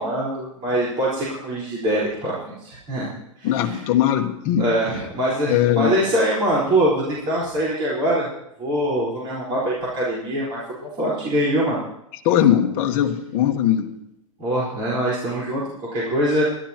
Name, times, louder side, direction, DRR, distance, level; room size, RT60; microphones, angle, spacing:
voice 1, 0.0-3.1 3.4-3.8 4.6-8.3 8.6-11.8 14.4-16.4, right 1 dB, 30° right, -7 dB, 4.5 m, -23 dB
voice 2, 3.4-4.6 5.5-5.9 12.2-13.9, left 10 dB, 35° left, 4 dB, 1.4 m, -19 dB
23.5 x 12.5 x 3.0 m, 0.79 s
supercardioid pair, 160°, 17 cm